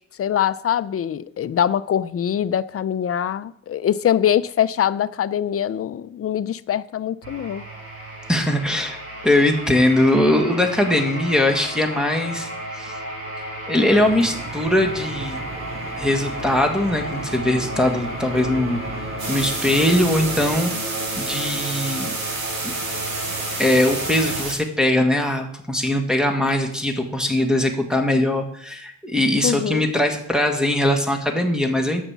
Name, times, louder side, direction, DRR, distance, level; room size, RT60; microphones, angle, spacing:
voice 1, 0.2-7.6 29.4-29.8, left 9 dB, 40° left, 0.5 m, -23 dB
sound 1, 7.2-24.4, right 1 dB, 40° right, 4.2 m, -33 dB
voice 2, 8.3-9.0 9.2-12.5 12.7-13.0 13.7-15.4 16.0-18.8 19.3-20.7 21.2-22.1 22.6-22.7 23.6-32.0, left 1 dB, ahead, 1.6 m, -21 dB
Engine, 13.9-20.6, right 2 dB, 15° right, 0.8 m, -37 dB
sound 2, 19.2-24.5, right 3 dB, 90° right, 3.8 m, -29 dB
9.4 x 7.1 x 7.3 m
cardioid pair, 120°, 36 cm